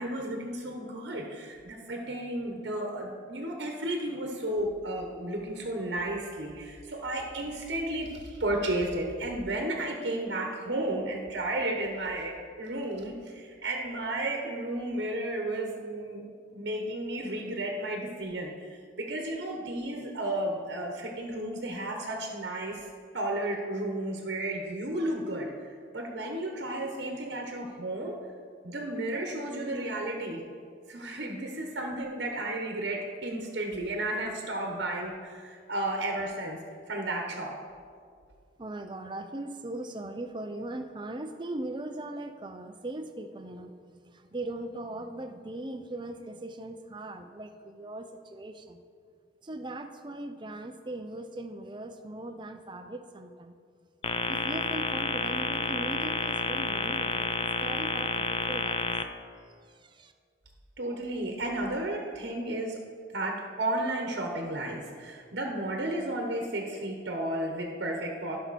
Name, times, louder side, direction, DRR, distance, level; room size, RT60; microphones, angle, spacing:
voice 1, 0.0-16.3 16.5-22.9 23.1-28.2 28.6-30.4 30.9-36.6 36.9-37.6 60.8-62.8 63.1-68.4, right 1 dB, 60° right, 1 dB, 1.1 m, -33 dB
voice 2, 38.6-43.7 44.0-48.8 49.4-53.6 54.3-59.0 59.6-60.1, right 1 dB, 25° right, 7 dB, 0.6 m, -39 dB
sound 1, 54.0-59.0, left 4 dB, 30° left, 0.4 m, -30 dB
16.0 x 5.6 x 4.2 m, 2.1 s
head